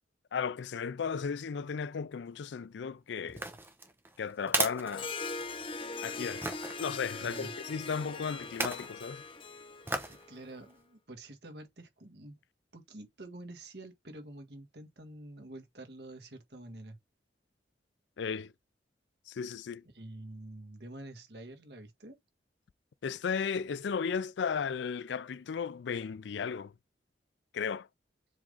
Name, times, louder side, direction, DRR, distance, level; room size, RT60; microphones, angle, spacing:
voice 1, 0.3-3.4 4.2-5.1 6.0-6.4 6.8-9.2 18.2-18.5 19.3-19.8 23.0-26.7 27.5-27.9, left 6 dB, 80° left, 0.4 m, -35 dB
sound 1, 3.3-5.7 6.4-6.8 8.4-8.9 9.9-10.2 10.7-10.8, right 2 dB, 15° right, 1.0 m, -35 dB
Harp, 4.9-10.6, left 4 dB, 30° left, 0.8 m, -41 dB
voice 2, 7.2-7.5 10.1-12.4 12.7-17.0 19.9-22.2, right 1 dB, 65° right, 1.9 m, -47 dB
7.4 x 3.6 x 3.8 m
head